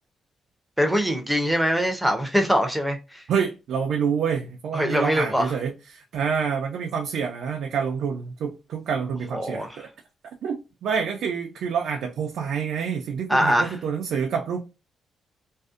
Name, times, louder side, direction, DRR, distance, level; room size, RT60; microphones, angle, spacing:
voice 1, 0.8-3.2 4.7-5.5 9.3-9.7 13.3-13.7, equal, ahead, 0.5 m, -23 dB
voice 2, 3.3-9.9 10.4-14.6, right 6 dB, 70° right, 0.4 m, -27 dB
2.6 x 2.0 x 2.4 m
cardioid pair, 140°, 0 cm